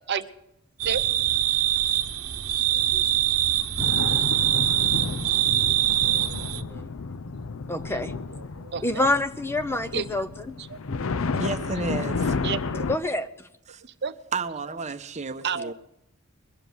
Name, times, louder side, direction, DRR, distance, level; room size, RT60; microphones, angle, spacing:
sound 1, 0.8-6.6, right 12 dB, 85° right, 0.9 m, -23 dB
voice 1, 2.7-3.1 3.5-3.7 5.1-5.3 5.9-6.8 7.9-8.0 8.4-9.1 9.9-10.0 10.6-10.8 11.3-11.4 12.3-12.9 14.0-14.2 15.4-15.7, right 6 dB, 55° right, 0.8 m, -33 dB
sound 2, 3.8-12.9, left 4 dB, 65° left, 0.6 m, -31 dB
voice 2, 7.7-8.1 8.8-10.6 12.9-13.3, left 2 dB, 10° left, 0.7 m, -26 dB
voice 3, 11.4-12.4 13.7-13.8 14.3-15.7, right 4 dB, 35° right, 1.0 m, -32 dB
22.0 x 7.7 x 7.7 m
head